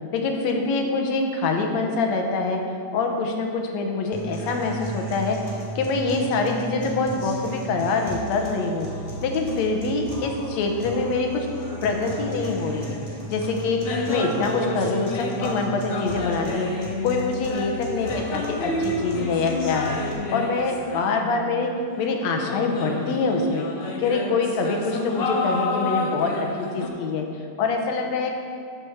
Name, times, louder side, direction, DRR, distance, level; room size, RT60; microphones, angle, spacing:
voice 1, 0.1-2.6 2.9-5.4 5.8-8.9 9.2-11.5 11.8-13.0 13.3-16.7 17.0-21.7 22.0-23.7 24.0-27.3 27.6-28.3, left 3 dB, 70° left, 3 dB, 2.1 m, -25 dB
sound 1, 4.1-20.1, right 1 dB, 10° left, 2.2 m, -35 dB
sound 2, 13.7-15.6 15.9-21.8 22.4-26.9, left 2 dB, 55° left, 1.9 m, -30 dB
11.0 x 6.1 x 7.2 m, 2.3 s
omnidirectional pair, 3.5 m